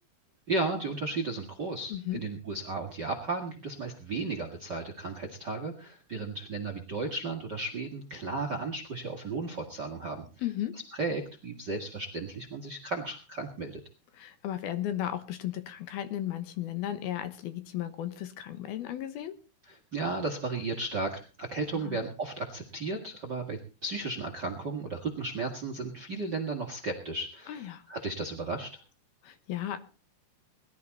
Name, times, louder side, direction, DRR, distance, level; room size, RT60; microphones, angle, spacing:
voice 1, 0.5-10.3 10.9-13.8 19.6-28.7, right 3 dB, 45° right, 5 dB, 1.4 m, -34 dB
voice 2, 1.9-2.2 10.4-10.7 14.1-19.3 21.7-22.0 27.5-27.8 29.2-29.8, left 12 dB, 70° left, 10 dB, 2.9 m, -35 dB
20.5 x 12.0 x 4.1 m, 0.35 s
omnidirectional pair, 4.8 m